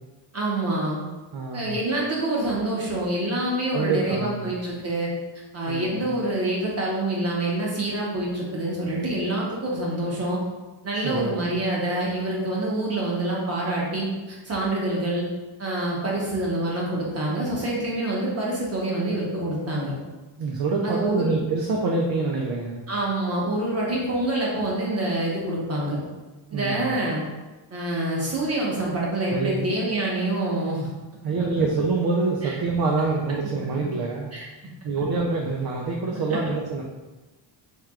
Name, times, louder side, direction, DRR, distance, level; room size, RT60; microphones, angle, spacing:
voice 1, 0.3-1.0 1.5-5.1 5.5-10.4 10.8-15.3 15.6-19.9 20.8-21.4 22.9-26.0 26.5-27.2 27.7-30.9 32.4-32.5 33.8-33.9 34.3-34.4 36.3-36.4, right 1 dB, 30° right, -4 dB, 1.1 m, -26 dB
voice 2, 1.3-1.7 3.7-4.5 5.7-6.0 11.0-11.3 20.4-22.8 26.5-27.0 29.3-29.6 31.2-34.3 34.8-36.8, right 3 dB, 50° right, -1 dB, 0.5 m, -26 dB
4.6 x 3.3 x 2.4 m, 1.2 s
cardioid pair, 130°, 50 cm